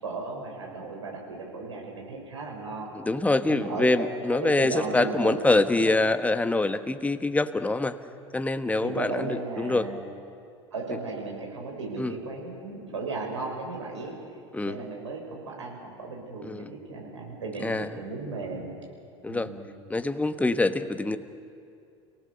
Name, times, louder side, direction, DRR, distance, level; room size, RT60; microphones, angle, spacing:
voice 1, 0.0-2.9 3.5-6.0 8.8-10.0 10.7-14.1 14.6-18.7 19.3-19.6, right 3 dB, 80° right, -1 dB, 6.1 m, -35 dB
voice 2, 2.9-8.0 8.3-9.9 12.0-12.2 14.5-14.8 16.4-16.7 17.6-17.9 19.2-19.5 19.9-21.2, left 2 dB, 10° left, 10 dB, 1.2 m, -25 dB
29.0 x 18.5 x 6.8 m, 2.4 s
figure-of-eight pair, 75°, 15 cm